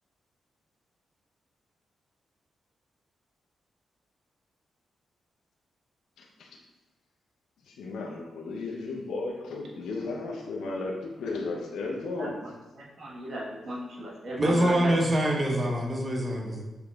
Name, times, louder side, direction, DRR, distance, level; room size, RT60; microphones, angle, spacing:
voice 1, 6.2-6.5 7.7-12.3, left 3 dB, 85° left, 0 dB, 0.6 m, -34 dB
voice 2, 12.7-15.0, right 1 dB, 65° right, -3 dB, 1.3 m, -36 dB
voice 3, 14.4-16.6, right 1 dB, 30° right, 1 dB, 0.9 m, -25 dB
6.6 x 3.0 x 2.3 m, 1.1 s
cardioid pair, 60°, 0 cm